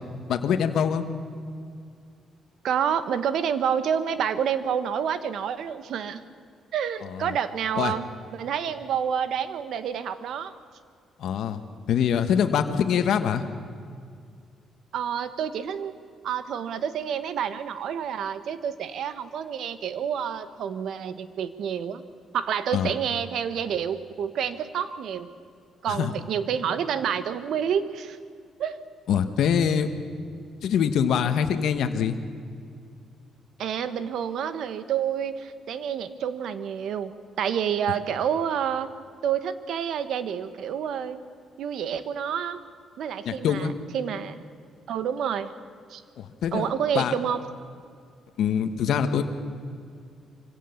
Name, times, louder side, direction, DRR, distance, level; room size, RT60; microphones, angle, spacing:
voice 1, 0.3-1.0 7.0-7.3 7.8-7.9 11.2-11.6 11.9-13.4 22.7-22.9 25.9-26.1 29.1-29.9 30.6-32.2 43.2-43.7 46.2-47.1 48.4-49.2, left 8 dB, 75° left, 7 dB, 1.3 m, -24 dB
voice 2, 2.6-6.2 6.7-8.0 8.3-10.5 14.9-22.0 22.3-25.3 25.8-28.2 28.6-28.8 33.6-38.9 39.2-41.2 41.6-42.6 43.0-44.5 44.9-45.5 45.9-46.0 46.5-47.4, right 8 dB, 75° right, 12 dB, 1.2 m, -28 dB
24.5 x 17.0 x 7.1 m, 2.3 s
cardioid pair, 90°, 0 cm